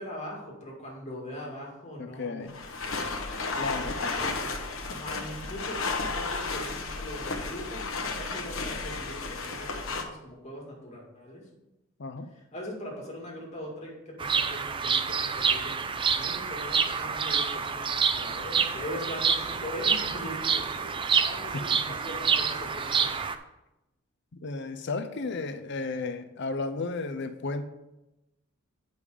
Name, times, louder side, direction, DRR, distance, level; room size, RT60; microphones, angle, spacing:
voice 1, 0.0-3.0 4.0-4.5 4.9-5.8 6.1-11.4 12.5-15.8 16.2-23.1, left 1 dB, 35° left, 2.2 m, -41 dB
voice 2, 2.0-2.6 3.5-4.2 12.0-12.3 21.5-21.6 24.4-27.6, left 3 dB, 55° left, 0.5 m, -34 dB
sound 1, 2.5-10.0, left 3 dB, 75° left, 1.0 m, -33 dB
Bird vocalization bird call bird song, 14.2-23.3, right 6 dB, 25° right, 0.4 m, -27 dB
8.5 x 5.3 x 4.9 m
head